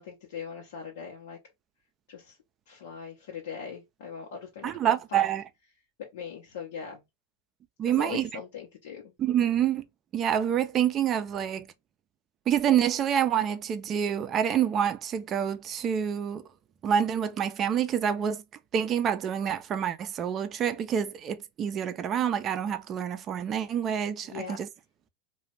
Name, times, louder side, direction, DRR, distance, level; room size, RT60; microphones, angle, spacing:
voice 1, 0.0-1.4 2.1-2.4 2.7-5.3 6.0-7.0 7.8-9.1 24.2-24.6, left 6 dB, 70° left, 0.8 m, -40 dB
voice 2, 4.6-5.4 7.8-8.3 9.2-9.8 10.1-11.7 12.5-16.4 16.8-18.4 18.7-24.7, right 9 dB, 35° right, 0.4 m, -27 dB
2.4 x 2.2 x 3.1 m
hypercardioid pair, 100°, 0 cm